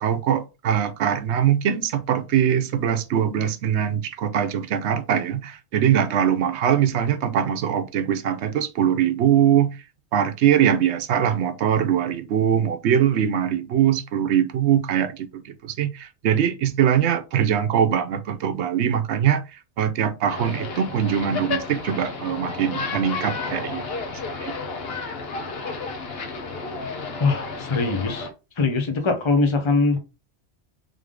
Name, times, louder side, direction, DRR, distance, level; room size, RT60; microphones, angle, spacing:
voice 1, 0.0-9.8 10.1-23.8 24.4-24.5, right 9 dB, 70° right, 0.9 m, -22 dB
sound 1, 20.3-28.3, left 4 dB, 60° left, 1.1 m, -32 dB
voice 2, 27.2-28.3 28.6-30.0, left 3 dB, 25° left, 0.8 m, -22 dB
3.7 x 3.4 x 3.6 m
omnidirectional pair, 1.2 m